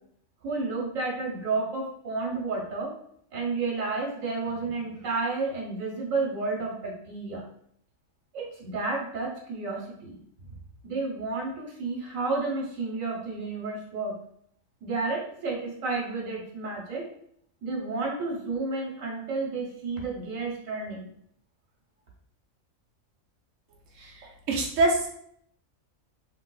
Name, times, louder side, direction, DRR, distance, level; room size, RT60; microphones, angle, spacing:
voice 1, 0.4-2.9 3.3-7.4 8.3-10.2 10.8-14.2 14.8-17.0 17.6-21.1, right 3 dB, 90° right, -1 dB, 1.4 m, -31 dB
voice 2, 24.0-25.1, right 2 dB, 70° right, 0 dB, 1.1 m, -25 dB
3.4 x 3.2 x 2.3 m, 0.66 s
omnidirectional pair, 1.4 m